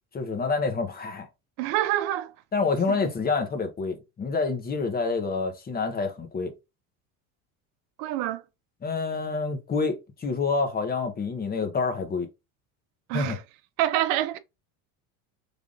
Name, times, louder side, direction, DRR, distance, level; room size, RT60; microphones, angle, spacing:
voice 1, 0.1-1.3 2.5-6.5 8.8-12.3 13.1-13.4, left 4 dB, 20° left, 0.6 m, -27 dB
voice 2, 1.6-2.3 2.9-3.0 8.0-8.4 13.1-13.4 13.8-14.4, right 13 dB, 85° right, 0.6 m, -26 dB
3.4 x 2.4 x 3.7 m
cardioid pair, 125°, 43 cm